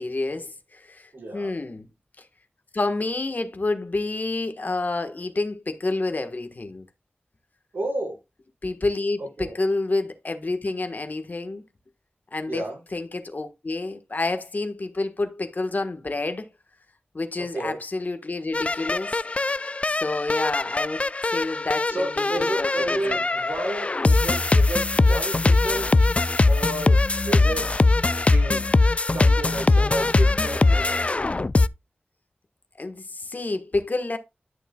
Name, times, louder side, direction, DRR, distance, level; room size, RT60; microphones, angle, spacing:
voice 1, 0.0-1.9 2.2-2.3 2.7-6.9 8.6-11.6 12.3-12.6 12.9-16.5 17.1-19.2 19.8-23.2 32.8-34.2, left 2 dB, 50° left, 1.4 m, -29 dB
voice 2, 1.1-1.5 7.7-8.2 9.4-9.6 12.5-12.8 17.5-17.8 21.9-25.9 26.5-27.0 27.2-27.7 28.3-28.6 29.1-31.1, right 1 dB, 70° right, 5.4 m, -31 dB
sound 1, 18.5-31.7, left 3 dB, 35° left, 0.4 m, -21 dB
11.0 x 6.7 x 2.3 m
wide cardioid pair, 65°, 4 cm